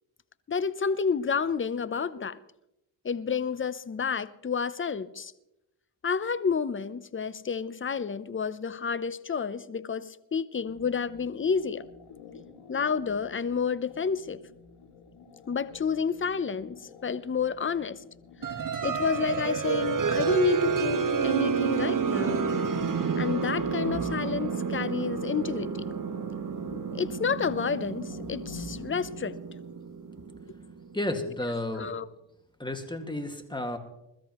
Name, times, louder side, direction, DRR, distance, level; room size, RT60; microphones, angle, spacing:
voice 1, 0.5-2.4 3.0-5.3 6.0-11.9 12.7-14.4 15.5-18.0 18.8-22.4 23.2-25.8 26.9-29.4 31.8-32.0, left 6 dB, 25° left, 0.7 m, -30 dB
sound 1, 10.7-29.1, left 4 dB, 80° left, 2.6 m, -48 dB
sound 2, 18.4-30.9, right 6 dB, 40° right, 1.5 m, -30 dB
voice 2, 30.9-31.9 32.6-33.8, left 1 dB, 10° left, 2.0 m, -32 dB
21.5 x 13.5 x 3.1 m
cardioid pair, 70°, 49 cm